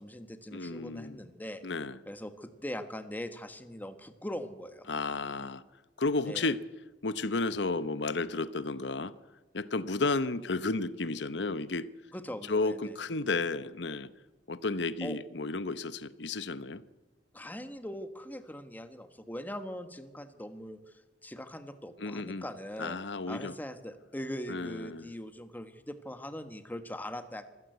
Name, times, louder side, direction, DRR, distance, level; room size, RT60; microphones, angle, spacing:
voice 1, 0.0-1.6 2.1-4.9 6.2-6.5 12.1-12.9 15.0-15.2 17.3-20.9 21.2-23.0 23.3-27.5, left 1 dB, 10° left, 1.4 m, -41 dB
voice 2, 0.5-1.2 1.6-2.0 4.9-5.6 6.0-6.6 7.0-9.1 9.5-11.9 12.5-14.1 14.5-16.8 22.0-22.4 22.8-23.5 24.5-25.1, left 3 dB, 70° left, 1.0 m, -32 dB
25.0 x 16.0 x 8.1 m
head